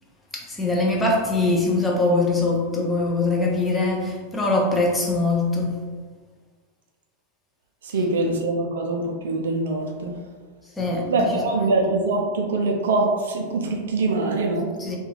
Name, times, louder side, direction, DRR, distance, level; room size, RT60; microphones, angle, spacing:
voice 1, 0.3-5.8 10.8-11.3 14.8-15.0, left 2 dB, 10° left, -3 dB, 0.6 m, -22 dB
voice 2, 7.8-10.2 11.1-14.7, right 2 dB, 60° right, 1 dB, 0.4 m, -23 dB
2.3 x 2.3 x 3.1 m, 1.5 s
figure-of-eight pair, 90°, 0 cm